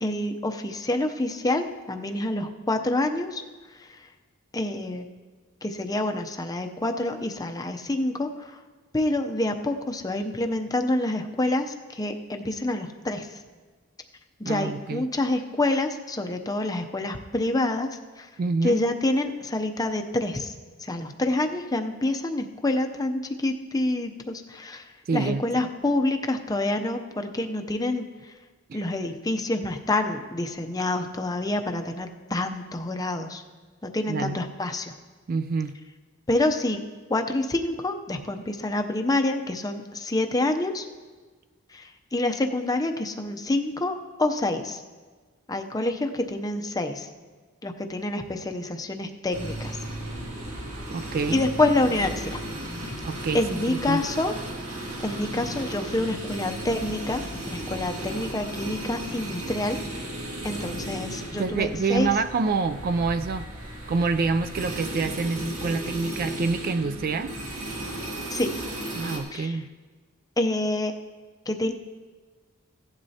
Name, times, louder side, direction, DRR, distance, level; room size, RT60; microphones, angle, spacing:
voice 1, 0.0-3.4 3.7-4.1 4.5-5.1 5.6-8.6 8.9-13.4 14.4-17.9 18.2-18.3 18.6-20.5 20.8-28.3 28.7-33.4 33.8-34.9 36.3-36.8 37.1-40.8 41.7-44.8 45.5-47.1 47.6-49.8 51.3-52.4 53.3-54.3 55.0-59.8 60.4-62.1 68.3-68.5 69.3-69.6 70.4-70.9 71.5-71.7, left 2 dB, 15° left, 5 dB, 0.6 m, -27 dB
voice 2, 14.4-15.1 18.4-18.8 25.1-25.4 28.7-28.8 34.1-34.4 35.3-35.8 50.9-51.5 53.0-54.0 61.3-63.5 63.9-67.3 68.9-69.7, right 4 dB, 45° right, 11 dB, 0.3 m, -27 dB
sound 1, 49.3-69.2, right 1 dB, 85° right, 1.9 m, -35 dB
16.0 x 11.0 x 2.8 m, 1.4 s
head